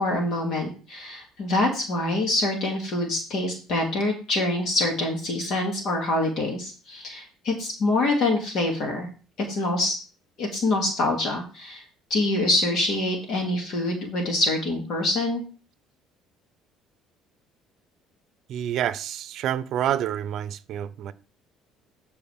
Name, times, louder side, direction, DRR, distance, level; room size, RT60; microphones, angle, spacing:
voice 1, 0.0-9.1 9.4-10.0 10.4-11.8 12.1-15.4, left 2 dB, 55° left, 2.7 m, -25 dB
voice 2, 18.5-21.1, right 10 dB, 55° right, 0.7 m, -28 dB
13.5 x 4.8 x 3.6 m
cardioid pair, 140°, 0 cm